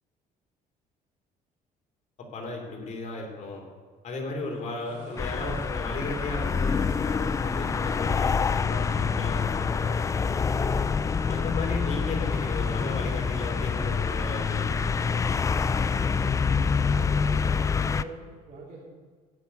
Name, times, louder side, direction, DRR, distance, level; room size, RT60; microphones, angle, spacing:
voice 1, 2.2-3.7 4.0-10.4 11.3-15.2, left 3 dB, 50° left, 1 dB, 3.2 m, -35 dB
sound 1, 4.7-17.7, right 3 dB, 50° right, 2.7 m, -46 dB
sound 2, 5.2-18.0, left 5 dB, 20° left, 0.3 m, -26 dB
voice 2, 17.2-18.8, right 3 dB, 65° right, -6 dB, 4.1 m, -43 dB
14.5 x 6.1 x 9.4 m, 1.5 s
cardioid pair, 135°, 16 cm